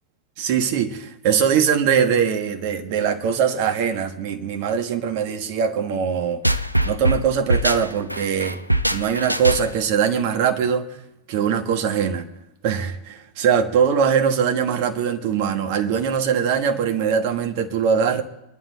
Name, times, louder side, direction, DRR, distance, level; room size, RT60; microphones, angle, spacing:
voice 1, 0.4-8.6 8.9-10.9 11.3-12.2 12.6-18.2, right 7 dB, 45° right, 1.5 m, -22 dB
sound 1, 6.4-9.9, right 1 dB, 90° right, 0.5 m, -22 dB
25.0 x 11.0 x 4.1 m
figure-of-eight pair, 90°, 0 cm